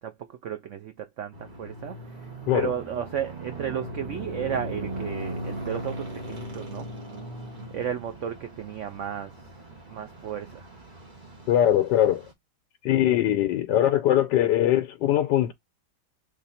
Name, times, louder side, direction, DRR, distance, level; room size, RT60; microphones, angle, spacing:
voice 1, 0.0-6.9 7.7-9.6 9.9-10.7, right 8 dB, 80° right, 0.6 m, -34 dB
sound 1, 1.3-12.3, right 1 dB, 30° right, 1.5 m, -38 dB
voice 2, 11.5-12.2 12.8-15.5, left 12 dB, 80° left, 1.3 m, -21 dB
3.6 x 3.2 x 4.1 m
omnidirectional pair, 1.9 m